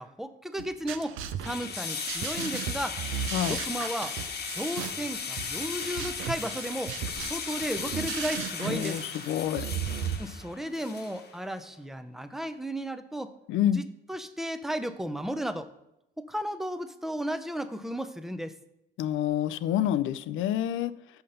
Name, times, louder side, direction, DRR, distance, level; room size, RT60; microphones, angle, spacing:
voice 1, 0.0-3.0 3.3-4.2 4.5-9.0 10.2-13.3 13.6-15.7 16.2-18.5, equal, ahead, 0.5 m, -34 dB
sound 1, 0.6-10.2, right 9 dB, 85° right, 0.6 m, -36 dB
sound 2, 1.4-11.4, left 5 dB, 55° left, 1.1 m, -36 dB
voice 2, 8.6-9.6 13.5-13.8 19.0-20.9, left 11 dB, 80° left, 0.4 m, -28 dB
5.8 x 5.5 x 6.4 m
cardioid pair, 90°, 20 cm